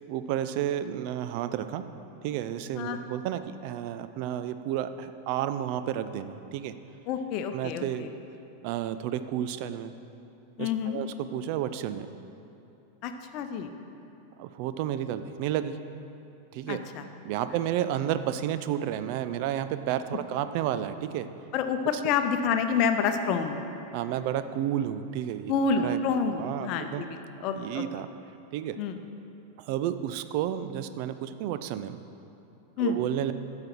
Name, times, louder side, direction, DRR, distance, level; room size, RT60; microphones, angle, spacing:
voice 1, 0.1-1.8 2.2-6.7 7.5-8.1 8.6-9.9 10.6-11.1 11.3-12.1 14.4-15.8 16.5-16.8 17.2-21.3 23.9-25.5 25.8-26.0 26.4-27.1 27.6-28.1 28.5-28.8 29.6-32.0 32.8-33.3, right 11 dB, 45° right, 11 dB, 0.5 m, -31 dB
voice 2, 7.1-8.1 10.6-11.0 13.0-13.7 16.7-17.0 17.5-17.6 21.5-23.6 25.5-27.9 28.8-29.0 32.8-33.0, left 6 dB, 40° left, 7 dB, 0.7 m, -28 dB
12.5 x 7.6 x 4.5 m, 2.8 s
figure-of-eight pair, 90°, 0 cm